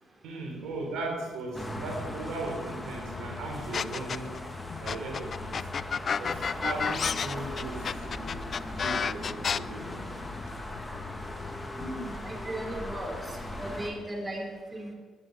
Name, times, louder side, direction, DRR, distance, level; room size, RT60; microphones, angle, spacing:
voice 1, 0.2-4.3 4.8-5.6 6.1-8.2 8.8-10.1, right 2 dB, 75° right, 1 dB, 3.7 m, -37 dB
sound 1, 1.2-12.1, left 6 dB, 80° left, 1.3 m, -49 dB
sound 2, 1.5-13.9, left 1 dB, 15° left, 2.4 m, -38 dB
sound 3, 3.7-4.4 4.9-9.6, left 6 dB, 50° left, 0.4 m, -30 dB
voice 2, 11.8-13.3 13.6-14.9, right 1 dB, 25° right, 1 dB, 3.6 m, -37 dB
12.5 x 10.5 x 6.3 m, 1.4 s
supercardioid pair, 65°, 0 cm